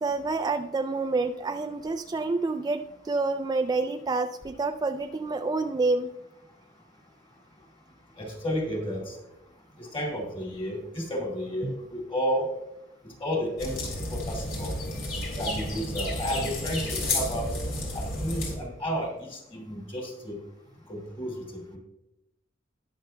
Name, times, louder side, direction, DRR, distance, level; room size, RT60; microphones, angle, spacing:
voice 1, 0.0-6.1 11.6-11.7 15.5-15.7, right 3 dB, 20° right, 7 dB, 0.3 m, -28 dB
voice 2, 8.2-9.2 9.8-12.5 13.0-14.7 15.4-17.5 17.9-20.4 20.9-21.8, equal, 30° left, -1 dB, 2.4 m, -32 dB
sound 1, 13.6-18.6, left 1 dB, 70° left, 3.2 m, -31 dB
19.0 x 6.6 x 2.2 m, 0.91 s
head